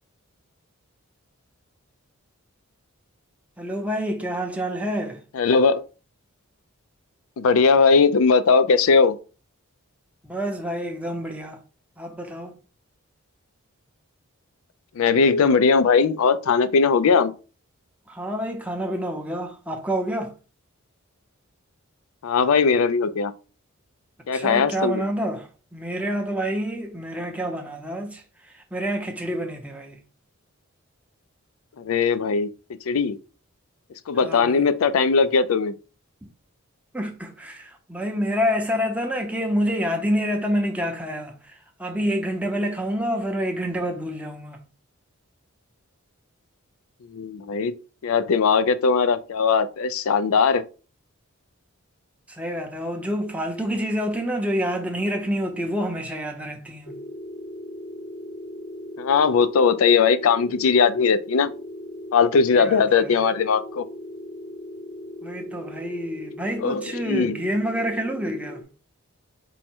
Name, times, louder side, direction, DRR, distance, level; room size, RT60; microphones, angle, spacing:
voice 1, 3.6-5.2 10.2-11.6 12.0-12.6 18.1-20.3 24.3-28.2 28.5-30.0 34.2-34.6 36.9-44.6 52.3-57.0 62.5-63.2 65.2-68.6, equal, 5° right, 0.6 m, -28 dB
voice 2, 5.3-5.8 7.4-9.2 15.0-17.3 22.2-23.3 24.3-25.0 31.8-32.5 32.9-33.2 34.1-35.7 47.1-47.7 48.0-50.6 59.0-61.5 62.1-63.8 66.6-67.4, left 5 dB, 70° left, 0.4 m, -19 dB
sound 1, 56.9-68.6, left 1 dB, 40° left, 0.7 m, -38 dB
4.7 x 2.1 x 4.3 m
head